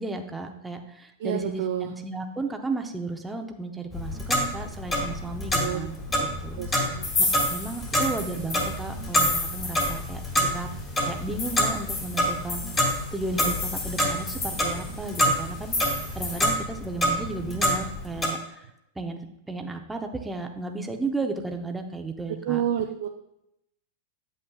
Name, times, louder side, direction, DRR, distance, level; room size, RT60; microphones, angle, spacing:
voice 1, 0.0-6.0 6.2-6.6 7.2-10.7 11.0-12.6 13.1-15.7 16.1-18.7 19.0-22.6, right 3 dB, 5° right, 4 dB, 0.7 m, -34 dB
voice 2, 1.2-2.0 5.6-5.9 6.6-7.1 22.3-23.1, right 10 dB, 70° right, 4 dB, 0.5 m, -29 dB
Clock, 3.9-18.3, equal, 15° left, 1.8 m, -27 dB
sound 1, 7.0-10.5 10.8-10.9 11.2-16.5, left 3 dB, 30° left, 1.7 m, -33 dB
8.2 x 7.8 x 2.3 m, 0.84 s
hypercardioid pair, 135°, 0 cm